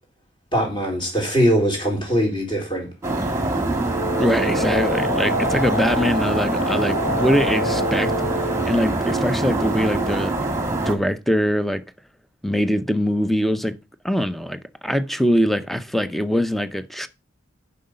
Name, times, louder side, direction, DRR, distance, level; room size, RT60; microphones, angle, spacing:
voice 1, 0.5-2.9, equal, 25° left, 3.8 m, -21 dB
sound 1, 3.0-11.0, right 2 dB, 15° right, 1.6 m, -24 dB
sound 2, 3.8-8.8, left 1 dB, 70° left, 1.8 m, -27 dB
voice 2, 4.2-8.1 8.7-10.3 10.8-11.8 12.4-13.8 14.0-17.1, equal, ahead, 0.6 m, -22 dB
7.8 x 5.6 x 6.7 m
head